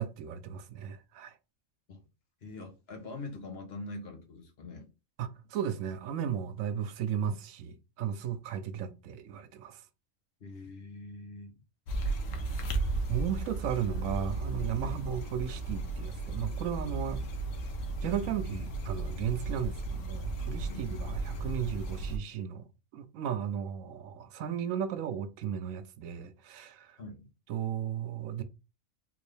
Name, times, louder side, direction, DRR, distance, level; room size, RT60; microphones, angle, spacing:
voice 1, 0.0-1.3 5.2-9.8 12.5-12.6 13.1-17.2 18.0-22.7 22.9-27.0 27.5-28.4, right 9 dB, 85° right, 1.0 m, -35 dB
voice 2, 2.4-4.9 10.4-11.5 14.8-15.0 20.7-20.8 27.0-27.3, left 2 dB, 55° left, 1.2 m, -43 dB
sound 1, 11.9-22.2, right 2 dB, 75° left, 1.1 m, -35 dB
3.8 x 2.6 x 3.2 m
omnidirectional pair, 1.3 m